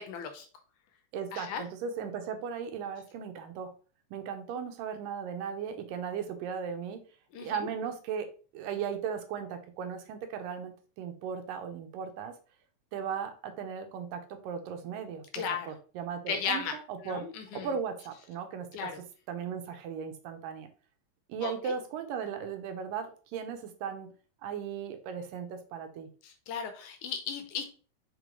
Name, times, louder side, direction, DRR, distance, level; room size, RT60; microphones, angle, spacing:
voice 1, 0.1-0.5 1.3-1.6 7.3-7.6 15.3-15.7 16.3-16.7 17.0-17.7 18.7-19.0 21.4-21.7 26.2-27.7, left 6 dB, 75° left, 7 dB, 2.2 m, -35 dB
voice 2, 1.1-3.7 4.1-7.0 7.4-8.3 8.5-12.4 12.9-17.3 17.5-20.7 21.3-24.1 24.4-26.1, right 7 dB, 80° right, 7 dB, 2.5 m, -37 dB
5.9 x 5.2 x 3.1 m, 0.38 s
omnidirectional pair, 3.9 m